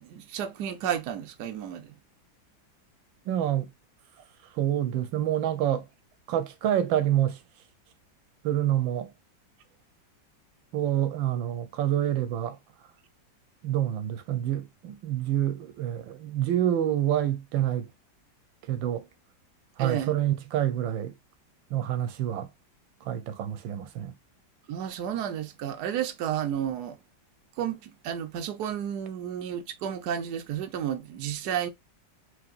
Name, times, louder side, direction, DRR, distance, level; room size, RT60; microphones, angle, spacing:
voice 1, 0.0-1.9 19.8-20.2 24.7-27.0 27.6-31.7, right 9 dB, 65° right, 1.2 m, -32 dB
voice 2, 3.3-3.7 4.6-5.8 6.3-7.4 8.4-9.1 10.7-12.6 13.6-17.9 18.7-19.0 19.8-21.1 21.7-22.5 23.1-24.1, right 11 dB, 90° right, 1.4 m, -27 dB
4.8 x 3.2 x 2.4 m
omnidirectional pair, 2.1 m